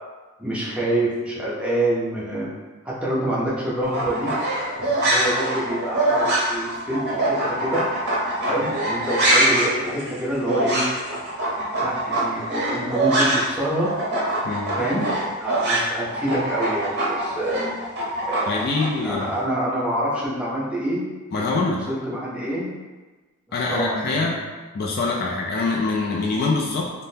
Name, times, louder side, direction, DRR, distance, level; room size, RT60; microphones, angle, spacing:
voice 1, 0.4-2.5 2.8-4.3 4.8-7.8 8.5-10.8 11.1-11.2 11.8-13.9 14.8-15.0 15.4-17.7 18.3-18.6 19.0-21.0 21.3-22.7 23.7-24.4, right 1 dB, 5° right, -8 dB, 0.6 m, -26 dB
sound 1, 3.8-13.6 13.8-18.9, right 1 dB, 50° right, 0.6 m, -23 dB
voice 2, 18.5-19.3 21.3-21.8 23.5-24.4 24.7-26.9, left 3 dB, 45° left, -1 dB, 0.3 m, -24 dB
3.4 x 2.1 x 2.7 m, 1.3 s
head